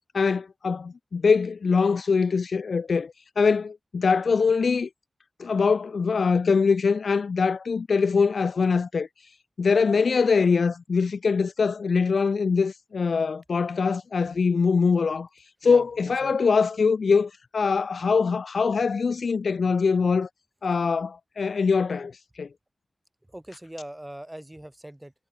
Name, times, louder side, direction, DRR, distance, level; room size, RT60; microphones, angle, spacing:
voice 1, 0.1-4.9 5.4-9.1 9.6-15.3 15.6-20.3 20.6-22.5, left 5 dB, 70° left, 0.3 m, -23 dB
voice 2, 15.6-16.3 23.3-25.1, right 1 dB, 10° right, 1.5 m, -41 dB
wide cardioid pair, 100°, 0 cm